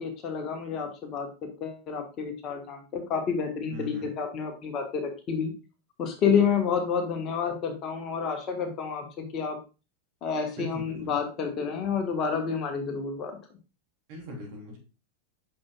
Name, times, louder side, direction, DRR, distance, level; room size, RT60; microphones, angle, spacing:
voice 1, 0.0-5.5 6.0-9.6 10.2-13.4, left 6 dB, 35° left, 5 dB, 1.5 m, -29 dB
voice 2, 3.7-4.1 10.6-11.1 14.1-14.8, equal, 45° right, 0 dB, 3.5 m, -39 dB
9.4 x 5.9 x 2.4 m, 0.31 s
figure-of-eight pair, 90°, 0 cm